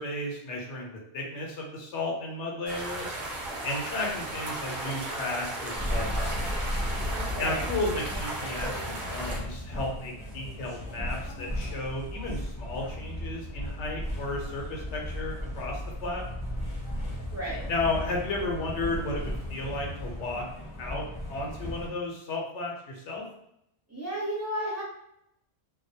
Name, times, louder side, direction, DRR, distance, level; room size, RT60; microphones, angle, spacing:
voice 1, 0.0-3.2 3.6-6.5 7.4-16.2 17.7-20.5 20.8-23.3, left 2 dB, 90° left, -1 dB, 0.9 m, -33 dB
sound 1, 2.7-9.4, right 1 dB, 55° right, 0.6 m, -35 dB
sound 2, 5.7-21.9, left 1 dB, 25° left, 0.7 m, -35 dB
voice 2, 7.1-7.6 17.3-17.7 23.9-24.8, right 1 dB, 15° right, -7 dB, 0.7 m, -33 dB
2.2 x 2.0 x 2.7 m, 0.78 s
omnidirectional pair, 1.1 m